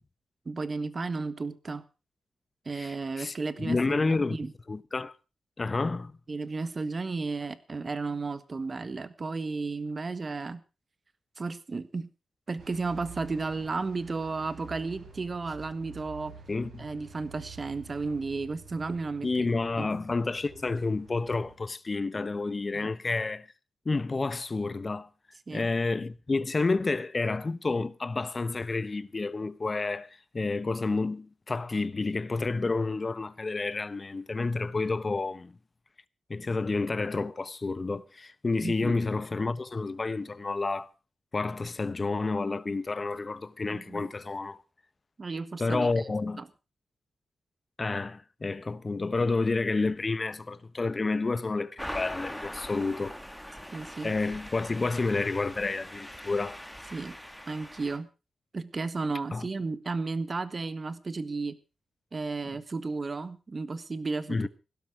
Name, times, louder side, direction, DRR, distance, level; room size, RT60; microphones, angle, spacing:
voice 1, 0.4-1.8 2.6-4.5 6.3-10.6 11.4-12.1 12.5-16.3 16.8-19.3 19.8-19.9 22.7-22.9 25.5-25.6 38.6-39.0 43.7-44.1 45.2-46.0 46.4-46.5 53.7-54.2 56.9-57.2 57.5-58.1 58.5-61.6 62.1-64.5, right 3 dB, 40° right, 1.5 m, -33 dB
voice 2, 2.7-4.4 4.7-5.1 5.6-6.1 16.5-16.9 19.2-23.5 23.8-25.1 25.5-35.5 36.3-40.9 41.3-44.6 45.6-46.4 47.8-53.1 54.0-56.6 59.3-59.5 64.3-64.5, left 3 dB, 35° left, 0.9 m, -30 dB
sound 1, 12.6-21.6, right 6 dB, 75° right, 7.2 m, -49 dB
sound 2, 51.8-58.0, equal, ahead, 1.8 m, -42 dB
16.0 x 12.5 x 4.8 m
cardioid pair, 90°, 0 cm